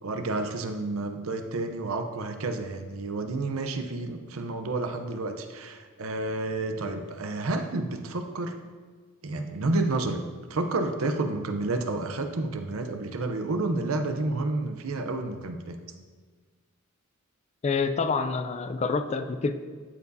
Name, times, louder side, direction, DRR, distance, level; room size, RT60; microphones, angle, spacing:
voice 1, 0.0-8.6 9.2-10.2 10.5-15.8, right 2 dB, 70° right, 6 dB, 0.6 m, -30 dB
voice 2, 17.6-19.5, left 4 dB, 30° left, 9 dB, 0.4 m, -27 dB
13.0 x 4.8 x 2.6 m, 1.5 s
head